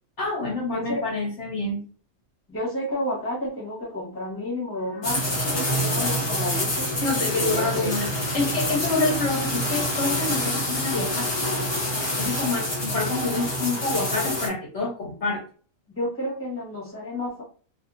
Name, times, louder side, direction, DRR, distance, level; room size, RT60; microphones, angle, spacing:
voice 1, 0.2-1.8 7.0-11.6 12.2-15.4, left 3 dB, 55° left, -2 dB, 1.0 m, -27 dB
voice 2, 0.7-1.0 2.5-6.9 7.3-8.0 15.9-17.4, left 1 dB, 10° left, -4 dB, 1.2 m, -31 dB
sound 1, 5.0-14.5, left 1 dB, 25° left, 0.6 m, -26 dB
2.7 x 2.7 x 2.5 m, 0.40 s
omnidirectional pair, 1.5 m